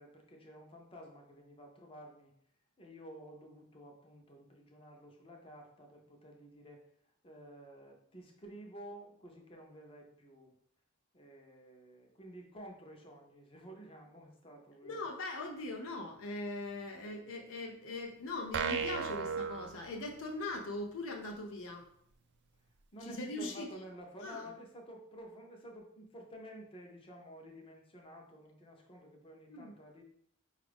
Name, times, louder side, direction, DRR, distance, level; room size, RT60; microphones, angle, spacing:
voice 1, 0.0-2.3 2.8-6.8 7.2-10.5 11.1-15.0 22.9-30.0, equal, 25° left, 1 dB, 0.7 m, -52 dB
voice 2, 14.8-21.9 23.2-23.7 24.2-24.4 29.5-29.7, left 2 dB, 65° left, 4 dB, 0.5 m, -40 dB
sound 1, 18.5-20.5, right 6 dB, 50° right, 0.3 m, -36 dB
4.9 x 2.4 x 3.4 m, 0.68 s
head